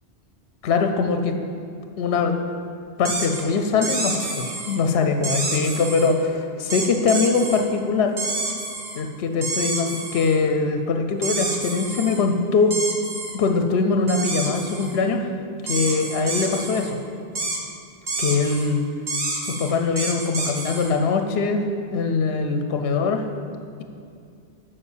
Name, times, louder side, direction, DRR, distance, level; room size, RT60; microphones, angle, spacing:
voice 1, 0.6-1.4 2.0-2.3 3.0-8.2 9.0-12.8 13.3-15.3 15.6-17.0 18.2-18.8 19.4-21.7 21.9-23.3, left 4 dB, 70° left, 6 dB, 0.9 m, -22 dB
sound 1, 3.0-3.4 3.8-4.8 5.2-6.1 6.7-7.6 8.2-9.0 9.4-10.4 11.2-12.2 12.7-13.4 14.1-15.0 15.7-16.9 17.4-17.6 18.1-18.7 19.1-20.9, right 2 dB, 40° right, 1.1 m, -28 dB
8.5 x 5.3 x 7.1 m, 2.3 s
omnidirectional pair, 1.1 m